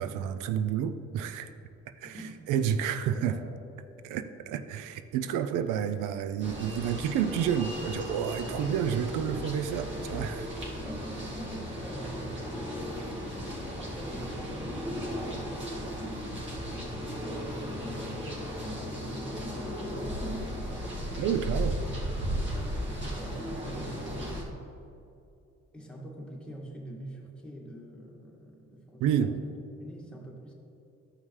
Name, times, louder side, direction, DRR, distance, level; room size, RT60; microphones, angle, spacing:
voice 1, 0.0-1.5 2.0-3.4 4.0-10.5 21.2-21.8 29.0-29.4, right 8 dB, 90° right, 11 dB, 0.5 m, -30 dB
voice 2, 2.0-2.4 3.1-3.4 10.8-12.9 13.8-20.9 21.8-24.3 25.7-29.4 29.8-30.5, right 1 dB, 5° left, -3 dB, 1.7 m, -44 dB
sound 1, 6.4-24.4, equal, 40° right, 2.0 m, -35 dB
12.5 x 5.5 x 3.2 m, 2.7 s
cardioid pair, 90°, 30 cm